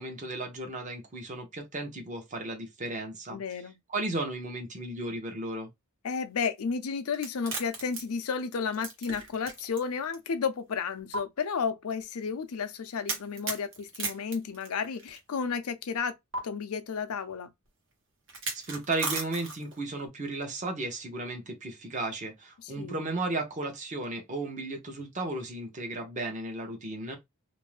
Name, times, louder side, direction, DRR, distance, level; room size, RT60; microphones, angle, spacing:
voice 1, 0.0-3.4 3.9-5.7 18.7-27.2, right 2 dB, 35° right, 0.8 m, -34 dB
voice 2, 3.3-3.8 6.0-16.1 16.4-17.5 22.6-23.0, left 5 dB, 75° left, 0.5 m, -32 dB
sound 1, 7.1-9.8 10.1-10.2 11.1-11.2 13.1-15.2 16.3-16.4 18.3-19.8, right 3 dB, 60° right, 1.0 m, -35 dB
2.6 x 2.1 x 3.2 m
head